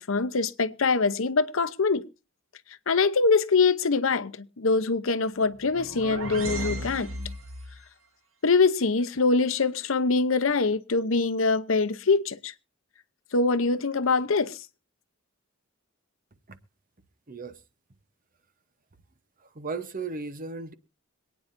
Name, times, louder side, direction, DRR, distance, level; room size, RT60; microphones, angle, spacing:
voice 1, 0.0-2.0 2.9-7.1 8.4-12.5 13.3-14.6, left 4 dB, 65° left, 0.8 m, -24 dB
sound 1, 5.5-7.8, right 1 dB, 70° right, 2.2 m, -35 dB
voice 2, 19.5-20.7, right 4 dB, 40° right, 0.9 m, -35 dB
26.0 x 9.4 x 2.6 m
head